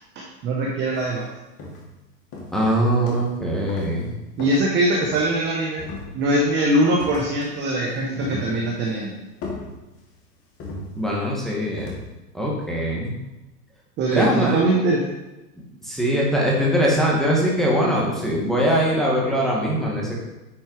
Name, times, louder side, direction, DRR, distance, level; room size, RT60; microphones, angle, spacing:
voice 1, 0.1-1.3 4.4-5.8 6.1-9.1 14.0-15.0, right 1 dB, 25° right, -2 dB, 1.0 m, -22 dB
sound 1, 0.9-1.1 1.6-2.0 2.3-3.4 3.7-4.0 4.4-5.4 5.8-6.5 7.0-7.6 7.9-8.9 9.4-10.2 10.6-11.3 11.8-12.1, left 2 dB, 30° left, 1.9 m, -37 dB
voice 2, 2.5-4.1 11.0-11.9 12.3-13.1 14.1-14.6 15.8-20.3, equal, ahead, -4 dB, 1.8 m, -22 dB
9.6 x 4.4 x 4.8 m, 1.0 s
hypercardioid pair, 140°, 48 cm